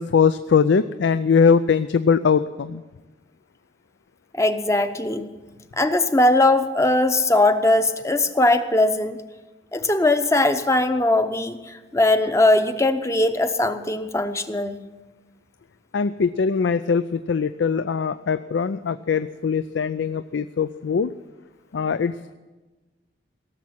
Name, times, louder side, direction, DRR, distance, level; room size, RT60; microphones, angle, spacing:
voice 1, 0.0-2.8 15.9-21.1 21.7-22.1, left 6 dB, 85° left, 13 dB, 0.4 m, -21 dB
voice 2, 4.3-5.3 5.8-9.2 9.7-14.8, left 2 dB, 15° left, 8 dB, 0.7 m, -20 dB
17.5 x 7.3 x 9.4 m, 1.2 s
head